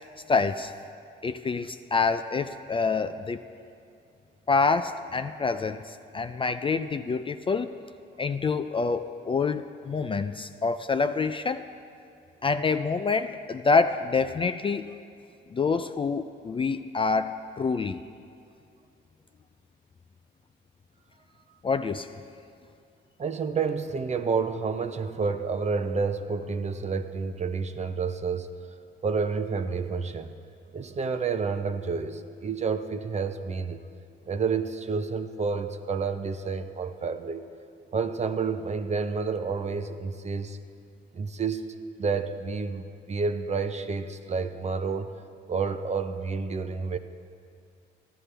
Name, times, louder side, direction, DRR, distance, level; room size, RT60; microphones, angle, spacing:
voice 1, 0.3-0.7 1.2-3.4 4.5-7.7 8.2-11.6 12.4-14.9 15.5-18.0 21.6-22.2, left 4 dB, 25° left, 9 dB, 0.4 m, -27 dB
voice 2, 23.2-28.5 29.0-30.3 30.7-33.9 34.3-37.4 37.9-40.6 41.1-41.6 42.0-45.1 45.5-47.0, right 5 dB, 35° right, 9 dB, 0.6 m, -29 dB
15.0 x 12.5 x 3.4 m, 2.4 s
cardioid pair, 90°, 20 cm